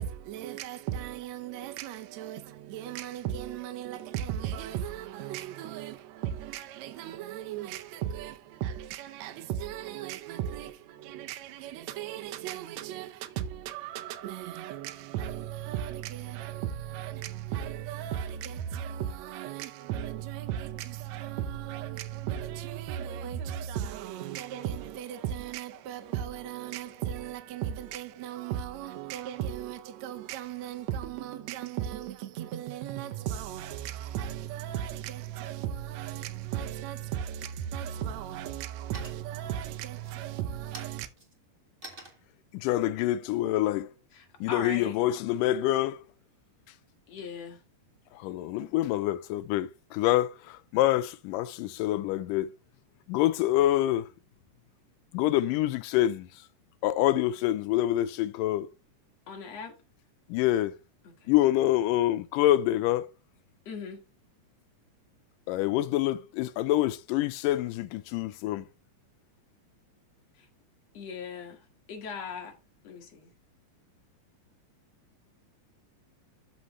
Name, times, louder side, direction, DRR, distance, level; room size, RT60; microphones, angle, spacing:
voice 1, 0.0-41.1, right 10 dB, 70° right, 1.7 m, -36 dB
sound 1, 38.9-39.5 39.9-44.4, right 2 dB, 20° right, 1.6 m, -50 dB
voice 2, 42.5-43.9 44.4-46.0 48.1-52.5 53.1-54.1 55.1-56.3 56.8-58.7 60.3-60.7 61.3-63.1 65.5-68.7, left 14 dB, 85° left, 2.2 m, -26 dB
voice 3, 44.1-45.0 47.1-47.6 59.3-59.7 61.0-61.3 63.7-64.0 70.4-70.5 70.9-71.6 71.9-72.5 72.8-73.3, left 5 dB, 55° left, 2.6 m, -39 dB
12.5 x 5.2 x 3.1 m
omnidirectional pair, 3.8 m